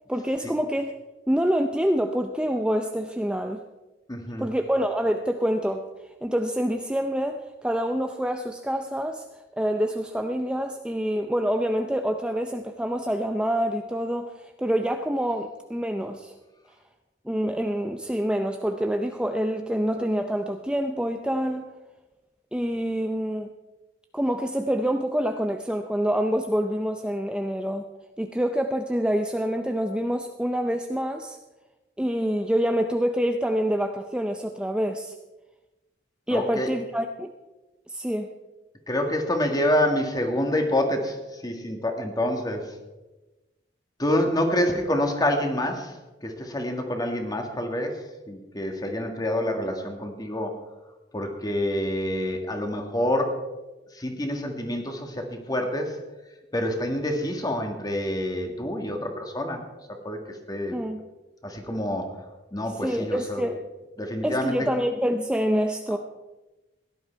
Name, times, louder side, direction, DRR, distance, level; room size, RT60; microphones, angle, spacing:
voice 1, 0.1-0.9 1.3-3.6 4.4-5.9 6.2-9.3 9.6-16.3 17.3-21.7 22.5-23.5 24.1-27.8 28.2-31.4 32.0-35.1 36.3-37.3 37.9-38.3 60.7-61.0 62.8-63.6 64.2-66.0, equal, 5° right, 5 dB, 0.5 m, -26 dB
voice 2, 4.1-4.5 36.3-36.7 38.9-42.7 44.0-50.6 51.1-53.4 53.9-56.0 56.5-59.6 60.0-60.8 61.4-62.2 62.5-63.4 64.0-64.7 65.9-66.0, left 1 dB, 20° left, 4 dB, 1.8 m, -27 dB
17.0 x 11.0 x 4.5 m, 1.1 s
head